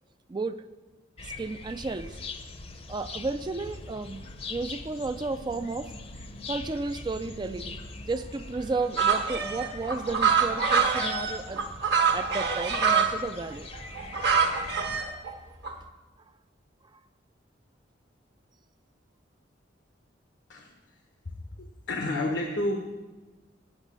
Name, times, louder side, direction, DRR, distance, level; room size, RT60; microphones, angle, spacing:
voice 1, 0.3-0.6 1.2-2.1 2.9-4.2 4.5-5.9 6.5-7.7 8.1-11.7 12.1-13.7 16.9-17.0, right 3 dB, 25° right, 10 dB, 0.3 m, -33 dB
sound 1, 1.2-15.0, left 3 dB, 30° left, 0.7 m, -42 dB
sound 2, 9.0-13.1 13.7-15.3 15.6-15.7, right 5 dB, 60° right, 1.3 m, -25 dB
voice 2, 21.6-22.9, left 1 dB, 85° left, 2 dB, 1.0 m, -30 dB
9.0 x 8.9 x 7.4 m, 1.2 s
head